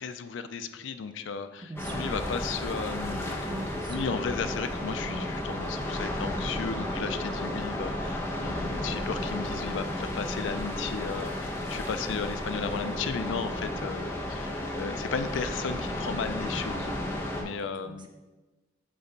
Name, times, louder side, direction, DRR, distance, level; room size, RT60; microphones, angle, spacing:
voice 1, 0.0-3.3 3.9-16.9 17.4-18.1, left 5 dB, 70° left, 10 dB, 0.4 m, -35 dB
voice 2, 1.6-2.2 3.4-4.5 5.0-5.2 16.0-16.2 17.3-18.1, right 1 dB, 25° right, 4 dB, 0.5 m, -43 dB
sound 1, 1.8-17.4, left 1 dB, 10° left, 0.8 m, -33 dB
7.6 x 3.4 x 4.3 m, 1.2 s
head